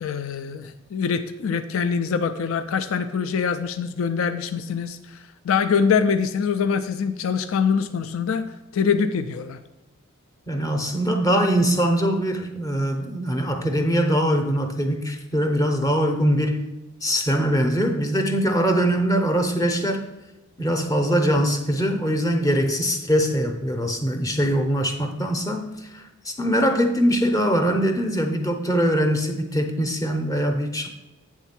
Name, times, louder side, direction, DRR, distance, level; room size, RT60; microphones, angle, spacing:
voice 1, 0.0-8.4 8.7-9.6, left 6 dB, 70° left, 10 dB, 0.4 m, -24 dB
voice 2, 10.5-16.6 17.0-20.0 20.6-25.7 25.9-30.9, equal, 15° left, 4 dB, 0.7 m, -22 dB
8.2 x 3.6 x 5.8 m, 1.0 s
head